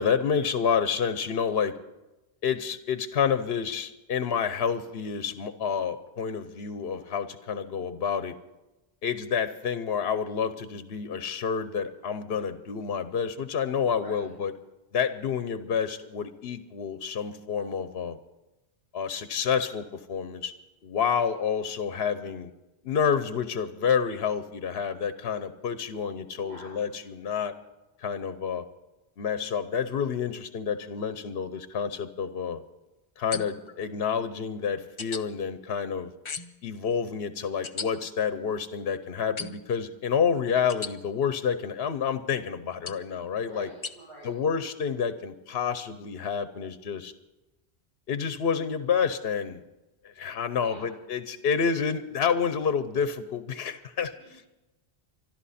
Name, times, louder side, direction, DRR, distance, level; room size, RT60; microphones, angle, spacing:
voice 1, 0.0-1.7 2.4-8.3 9.0-14.5 14.9-18.2 18.9-20.5 20.8-22.5 22.8-27.5 28.0-28.6 29.2-32.6 33.2-36.1 36.6-43.7 44.2-47.1 48.1-49.6 50.2-54.1, left 7 dB, 70° left, 11 dB, 1.0 m, -29 dB
voice 2, 13.9-14.3 21.0-21.2 26.4-26.7 43.4-44.3 50.5-50.9 54.1-54.5, right 1 dB, 75° right, -8 dB, 7.2 m, -47 dB
sound 1, 33.3-33.7 35.0-35.2 36.2-36.6 37.6-37.9 39.4-39.7 40.7-40.9 42.9-43.1 43.8-43.9, left 5 dB, 35° left, 0.6 m, -36 dB
25.5 x 12.0 x 4.2 m, 1.0 s
omnidirectional pair, 1.1 m